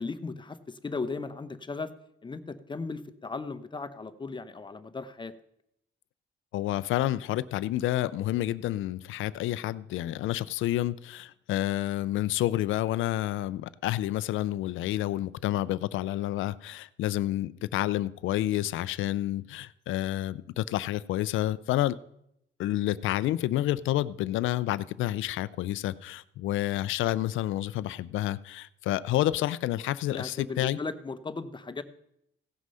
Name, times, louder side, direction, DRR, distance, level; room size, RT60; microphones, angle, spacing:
voice 1, 0.0-1.9 2.2-5.3 30.1-31.8, left 4 dB, 25° left, 11 dB, 0.8 m, -36 dB
voice 2, 6.5-22.0 22.6-30.8, left 14 dB, 80° left, 18 dB, 0.5 m, -29 dB
16.5 x 6.2 x 5.5 m, 0.77 s
cardioid pair, 90°, 20 cm